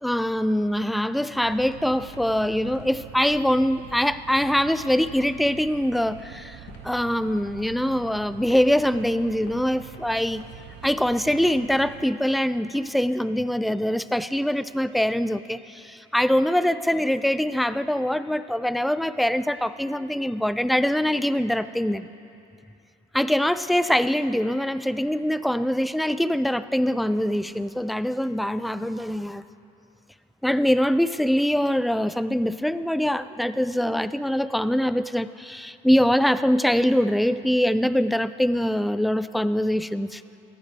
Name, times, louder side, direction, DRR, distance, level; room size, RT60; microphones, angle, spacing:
voice 1, 0.0-10.4 10.8-22.1 23.1-29.4 30.4-40.2, equal, ahead, 14 dB, 0.3 m, -23 dB
sound 1, 1.4-12.0, right 9 dB, 75° right, 0.8 m, -45 dB
sound 2, 1.6-1.7 1.9-13.4, left 5 dB, 85° left, 1.8 m, -51 dB
19.0 x 14.5 x 3.4 m, 2.6 s
cardioid pair, 100°, 17 cm